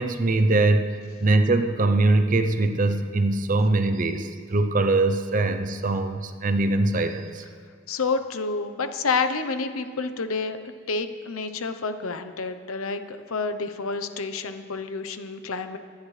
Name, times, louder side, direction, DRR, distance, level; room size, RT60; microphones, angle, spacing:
voice 1, 0.0-7.4, right 2 dB, 40° right, 7 dB, 0.6 m, -22 dB
voice 2, 7.9-10.6 10.9-15.8, left 4 dB, 85° left, 9 dB, 0.8 m, -29 dB
24.0 x 10.0 x 3.3 m, 2.1 s
head